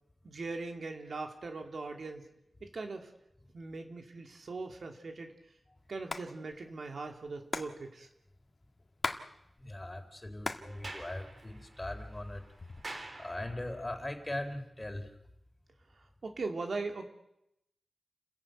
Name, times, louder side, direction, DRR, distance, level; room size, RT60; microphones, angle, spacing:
voice 1, 0.2-2.3 2.6-3.1 3.5-5.3 5.9-8.1 15.9-17.1, right 3 dB, 75° right, 4 dB, 2.9 m, -40 dB
Hands, 5.9-6.3 6.5-6.6 6.8-9.3 9.6-10.7 11.1-11.8 12.4-13.0, left 3 dB, 55° left, 1.8 m, -38 dB
voice 2, 9.6-12.4 13.2-15.1, left 1 dB, 25° left, 6 dB, 4.0 m, -40 dB
Sliding door, 10.6-13.9, right 2 dB, 55° right, 3.5 m, -48 dB
29.0 x 15.0 x 9.3 m, 0.83 s
wide cardioid pair, 70°, 0 cm